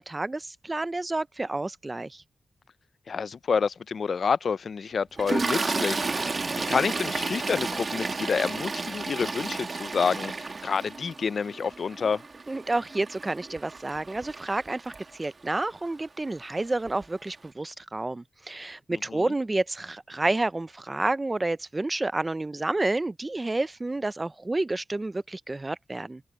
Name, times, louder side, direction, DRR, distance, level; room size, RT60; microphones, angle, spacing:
voice 1, 0.0-2.2 12.5-26.2, right 2 dB, 20° right, 0.4 m, -30 dB
voice 2, 3.1-6.4 6.7-12.2 18.9-19.3, left 5 dB, 60° left, 0.4 m, -28 dB
Toilet flush, 5.2-15.5 16.4-16.6 16.8-17.0, right 3 dB, 40° right, 1.4 m, -32 dB
open air
wide cardioid pair, 135°, 0 cm